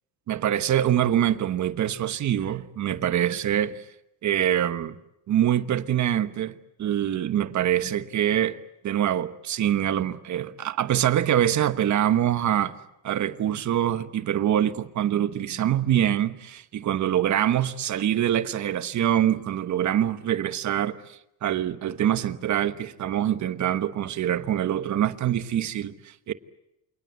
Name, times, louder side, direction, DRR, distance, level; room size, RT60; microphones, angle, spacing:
voice 1, 0.3-3.8 4.2-5.0 5.3-8.6 8.8-12.7 13.0-26.3, right 11 dB, 40° right, 1.1 m, -24 dB
28.0 x 19.0 x 8.0 m
cardioid pair, 140°, 44 cm